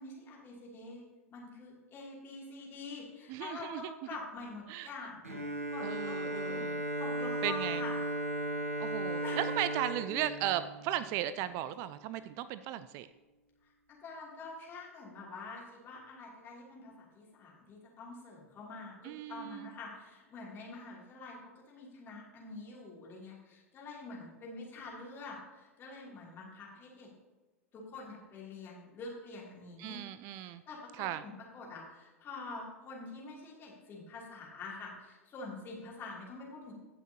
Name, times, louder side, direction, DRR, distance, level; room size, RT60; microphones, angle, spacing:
voice 1, 0.0-6.6 7.0-8.0 9.2-9.4 13.6-21.4 21.7-27.1 27.7-30.0 30.3-36.7, left 3 dB, 30° left, -3 dB, 2.8 m, -46 dB
voice 2, 3.3-3.9 4.7-4.9 5.8-6.8 7.4-7.8 8.8-13.1 19.0-19.7 29.8-30.6 31.0-31.2, right 12 dB, 40° right, 14 dB, 0.3 m, -36 dB
Bowed string instrument, 5.2-11.3, right 1 dB, 80° right, 1.2 m, -36 dB
17.0 x 5.8 x 2.9 m, 1.2 s
figure-of-eight pair, 90°, 8 cm